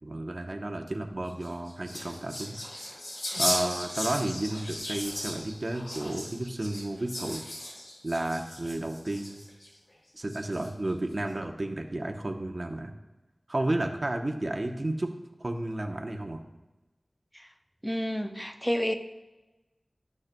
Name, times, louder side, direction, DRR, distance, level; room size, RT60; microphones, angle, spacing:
voice 1, 0.0-2.6 3.4-7.4 8.0-9.4 10.1-12.9 13.5-15.1 15.4-16.4, right 1 dB, 45° right, 4 dB, 0.8 m, -32 dB
sound 1, 1.3-9.7 10.3-10.9, left 1 dB, 85° left, 2.6 m, -36 dB
voice 2, 17.8-18.9, equal, 5° left, 7 dB, 0.6 m, -30 dB
11.5 x 6.4 x 2.2 m, 1.1 s
wide cardioid pair, 60°, 0 cm